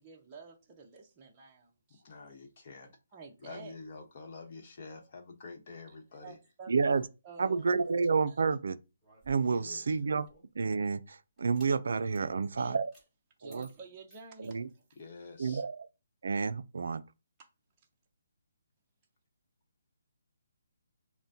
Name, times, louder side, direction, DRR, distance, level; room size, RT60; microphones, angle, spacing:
voice 1, 0.0-2.0 3.1-3.8 5.9-7.7 8.3-8.4 12.3-12.8 13.4-14.8 17.4-17.5, right 4 dB, 20° right, 0.7 m, -51 dB
voice 2, 2.0-2.9 3.4-6.4 9.4-10.0 15.0-15.6, left 3 dB, 40° left, 1.0 m, -47 dB
voice 3, 6.7-7.0 7.4-8.8 9.3-10.3 10.6-12.9 13.4-13.7 14.4-14.7 15.4-15.9 16.2-17.0, right 4 dB, 70° right, 0.4 m, -30 dB
sound 1, 9.0-10.6 11.4-11.7 12.1-12.3 12.9-13.1 13.5-15.0, right 2 dB, 5° left, 1.5 m, -61 dB
5.8 x 2.1 x 2.7 m
hypercardioid pair, 165°, 0 cm